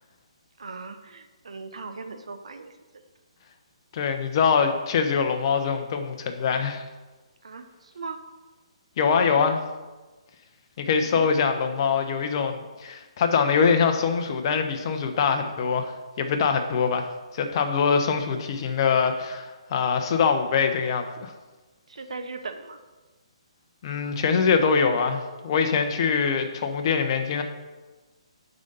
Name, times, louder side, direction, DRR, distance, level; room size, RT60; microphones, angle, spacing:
voice 1, 0.6-2.7 7.4-8.2 11.0-11.3 21.9-22.8, right 4 dB, 70° right, 7 dB, 0.9 m, -38 dB
voice 2, 3.9-6.8 9.0-9.6 10.8-21.3 23.8-27.4, left 6 dB, 40° left, 6 dB, 0.9 m, -23 dB
9.8 x 4.0 x 5.4 m, 1.2 s
figure-of-eight pair, 140°, 3 cm